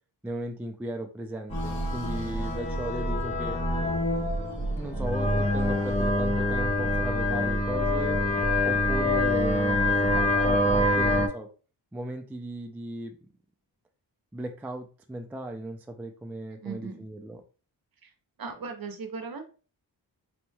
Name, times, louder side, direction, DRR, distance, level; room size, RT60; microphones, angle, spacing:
voice 1, 0.2-3.6 4.8-8.2 8.6-11.5 11.9-13.2 14.3-17.4, right 1 dB, 5° right, 4 dB, 0.3 m, -36 dB
sound 1, 1.5-6.4, left 1 dB, 40° left, 1.3 m, -46 dB
sound 2, 1.5-11.3, left 1 dB, 15° left, 0.8 m, -25 dB
voice 2, 16.5-17.1 18.0-18.1 18.4-19.4, right 5 dB, 50° right, 6 dB, 0.8 m, -38 dB
4.2 x 3.0 x 2.2 m, 0.37 s
wide cardioid pair, 80°, 46 cm